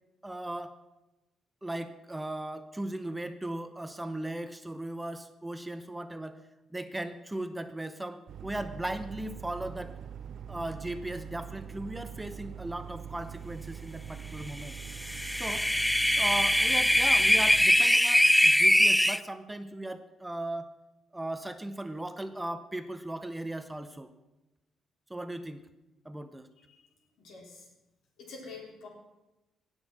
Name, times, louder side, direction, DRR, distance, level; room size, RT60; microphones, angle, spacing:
voice 1, 0.2-0.8 1.6-6.4 6.7-9.9 10.5-14.8 15.4-15.7 16.1-20.7 21.1-24.1 25.1-25.6 26.0-26.5, right 1 dB, 10° right, 10 dB, 0.8 m, -37 dB
sound 1, 8.3-17.7, right 8 dB, 65° right, 0.5 m, -43 dB
sound 2, 14.9-19.2, equal, 5° left, 0.3 m, -22 dB
voice 2, 27.2-27.7 28.2-28.9, left 4 dB, 75° left, 0 dB, 3.7 m, -46 dB
17.5 x 6.3 x 6.0 m, 1.0 s
cardioid pair, 90°, 0 cm